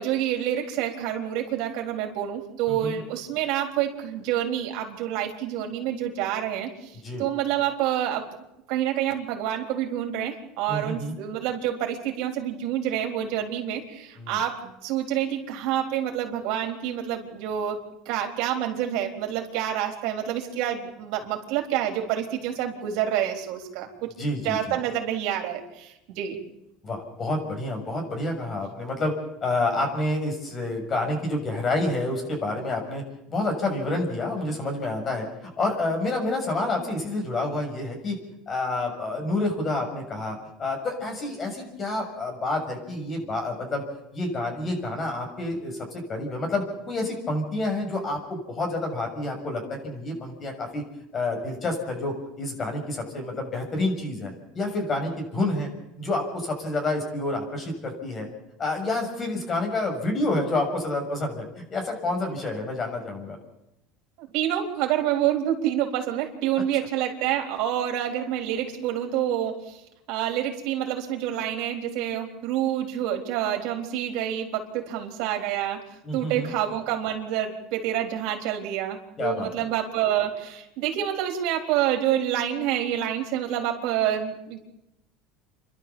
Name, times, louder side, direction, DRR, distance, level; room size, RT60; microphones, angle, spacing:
voice 1, 0.0-8.2 8.7-17.8 18.1-24.1 24.4-26.4 64.2-69.8 70.1-75.8 76.1-84.6, right 11 dB, 65° right, 2 dB, 4.1 m, -28 dB
voice 2, 2.7-3.0 7.0-7.2 10.7-11.1 14.2-14.4 24.2-24.7 26.8-29.1 29.4-33.0 33.3-38.1 38.5-43.8 44.1-50.8 51.1-55.7 56.0-58.3 58.6-61.4 61.7-63.4 76.0-76.5 79.2-79.5, left 2 dB, 30° left, 3 dB, 6.9 m, -28 dB
29.0 x 12.5 x 7.2 m, 0.87 s
supercardioid pair, 115°, 0 cm